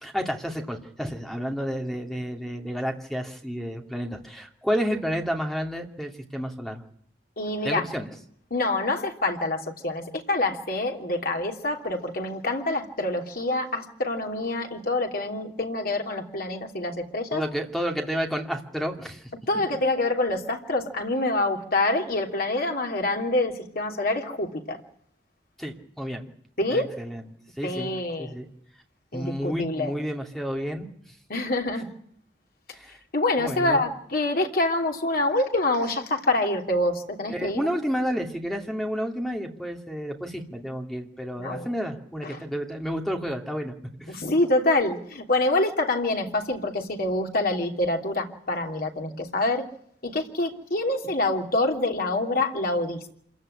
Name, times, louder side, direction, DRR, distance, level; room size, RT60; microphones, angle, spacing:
voice 1, 0.0-6.8 7.6-8.1 17.3-19.2 25.6-26.3 26.7-27.2 27.6-27.9 28.2-28.5 29.1-30.9 32.7-32.9 33.4-33.8 37.3-43.7 44.0-44.2, equal, ahead, 3 dB, 2.6 m, -30 dB
voice 2, 7.4-7.8 8.5-17.4 19.5-24.8 26.6-26.9 27.6-28.4 29.1-29.9 31.3-31.9 33.1-37.6 41.4-41.7 42.2-42.4 44.1-49.6 50.0-53.1, left 2 dB, 55° left, 2 dB, 3.1 m, -26 dB
26.5 x 16.0 x 10.0 m, 0.66 s
head